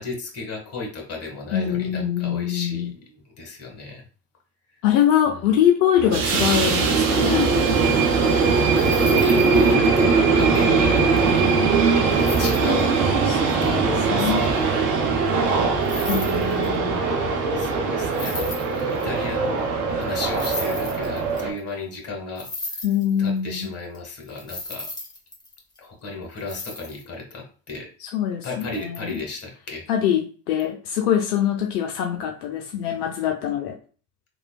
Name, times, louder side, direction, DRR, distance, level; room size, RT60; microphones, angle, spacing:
voice 1, 0.0-4.0 5.3-5.5 8.9-11.5 12.4-13.0 13.4-14.7 15.2-15.7 17.5-22.5 23.2-24.9 25.8-27.9 28.4-29.9, left 3 dB, 30° left, 0 dB, 1.2 m, -34 dB
voice 2, 1.5-2.9 4.8-7.5 11.8-12.4 13.3-13.7 14.1-14.4 16.1-17.0 22.8-23.7 28.0-29.2 29.9-33.7, left 9 dB, 75° left, 3 dB, 0.5 m, -23 dB
sound 1, 6.0-21.5, right 4 dB, 70° right, 0.7 m, -20 dB
sound 2, 8.3-9.6 12.1-12.8 15.8-16.8 18.1-19.2 20.3-21.6 22.4-23.6 23.9-24.0 24.2-25.8 26.4-27.0, left 2 dB, 10° left, 0.8 m, -35 dB
3.1 x 2.2 x 2.3 m, 0.39 s
hypercardioid pair, 60°, 47 cm